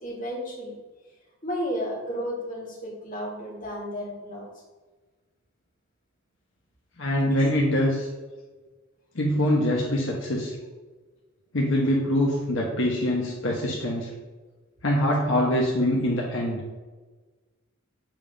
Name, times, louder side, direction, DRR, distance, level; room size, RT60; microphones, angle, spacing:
voice 1, 0.0-0.8 1.4-4.5 7.3-7.4, equal, 40° left, -5 dB, 2.1 m, -33 dB
voice 2, 7.0-8.1 9.1-10.5 11.5-14.1 14.8-16.6, left 1 dB, 70° left, -2 dB, 1.1 m, -24 dB
7.5 x 3.7 x 5.0 m, 1.3 s
head